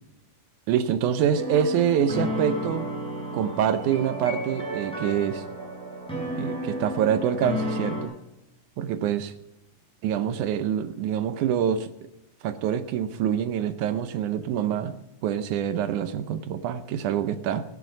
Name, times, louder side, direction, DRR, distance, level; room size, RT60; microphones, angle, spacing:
voice 1, 0.7-2.9 3.3-5.4 6.4-8.1 8.8-9.3 10.0-11.9 12.4-15.0 15.2-17.7, right 9 dB, 75° right, 11 dB, 2.0 m, -25 dB
sound 1, 1.3-8.0, equal, ahead, 5.8 m, -32 dB
16.5 x 11.0 x 6.5 m, 0.86 s
omnidirectional pair, 3.9 m